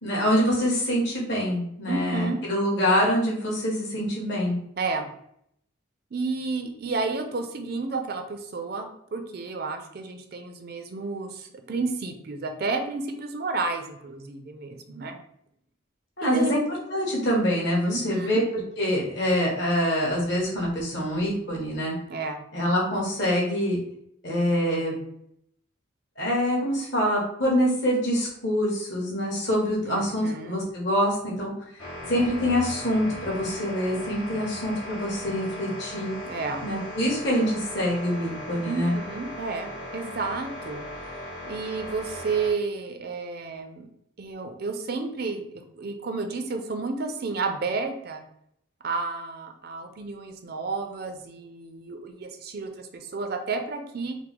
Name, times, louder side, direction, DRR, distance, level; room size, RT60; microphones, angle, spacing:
voice 1, 0.0-4.6 16.2-16.6 16.9-18.4 18.8-22.0 22.5-23.8 24.2-24.9 26.2-31.5 32.1-36.1 36.6-38.9, equal, 55° left, -3 dB, 1.5 m, -25 dB
voice 2, 1.9-2.4 4.8-5.1 6.1-15.2 16.2-16.5 17.9-18.4 22.1-22.4 29.8-30.6 36.3-36.6 38.7-40.8 41.5-43.9 44.2-48.2 48.8-54.2, right 4 dB, 50° right, 6 dB, 0.5 m, -31 dB
sound 1, 31.8-42.5, left 1 dB, 80° left, 1.4 m, -38 dB
4.8 x 2.1 x 3.6 m, 0.72 s
head